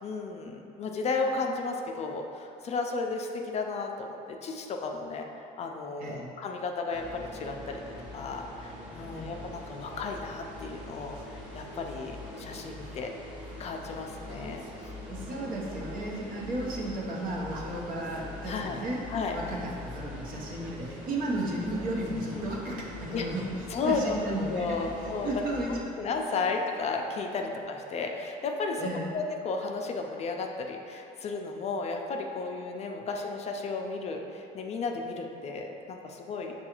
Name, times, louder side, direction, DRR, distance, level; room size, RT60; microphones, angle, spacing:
voice 1, 0.0-5.3 5.6-7.8 8.1-11.1 11.5-13.1 13.6-15.2 18.5-18.8 19.1-19.4 22.3-22.5 23.1-23.3 23.7-24.2 24.5-25.4 25.7-36.5, left 4 dB, 40° left, 2 dB, 0.4 m, -33 dB
voice 2, 6.0-6.3 9.1-9.4 15.1-19.0 19.3-23.5 23.8-24.9 25.2-25.8 28.8-29.1, right 1 dB, 55° right, -3 dB, 0.8 m, -34 dB
sound 1, 6.9-25.8, left 1 dB, 5° right, 0.8 m, -43 dB
sound 2, 9.9-24.9 25.4-25.5 25.7-28.4, right 2 dB, 85° right, 0.5 m, -52 dB
6.5 x 2.3 x 2.9 m, 2.8 s
cardioid pair, 105°, 17 cm